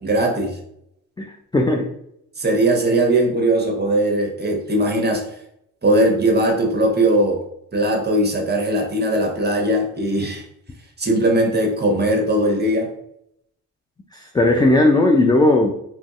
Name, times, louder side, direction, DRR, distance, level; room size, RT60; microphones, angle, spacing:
voice 1, 0.0-0.6 2.4-5.2 5.8-7.4 7.7-10.4 11.0-12.9, right 1 dB, 25° right, 2 dB, 1.0 m, -19 dB
voice 2, 1.5-1.9 14.3-15.8, left 2 dB, 10° left, 2 dB, 0.3 m, -16 dB
3.1 x 2.5 x 2.4 m, 0.73 s
supercardioid pair, 50°, 40 cm